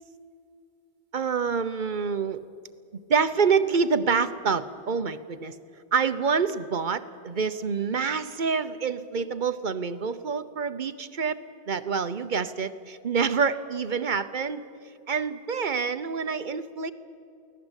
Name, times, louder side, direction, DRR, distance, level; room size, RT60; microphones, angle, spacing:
voice 1, 1.1-2.4 2.9-5.6 5.9-11.4 11.7-14.6 15.1-16.9, right 5 dB, 50° right, 12 dB, 1.0 m, -27 dB
24.0 x 17.0 x 8.1 m, 2.4 s
omnidirectional pair, 1.1 m